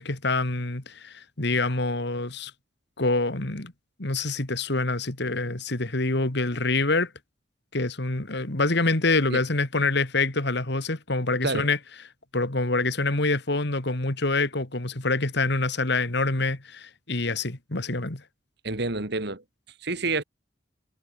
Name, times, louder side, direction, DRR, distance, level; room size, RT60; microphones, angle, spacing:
voice 1, 0.0-2.5 3.0-3.7 4.0-7.1 7.7-11.8 12.3-18.2, left 3 dB, 60° left, 2.4 m, -26 dB
voice 2, 18.6-19.4 19.8-20.2, right 3 dB, 60° right, 2.6 m, -28 dB
head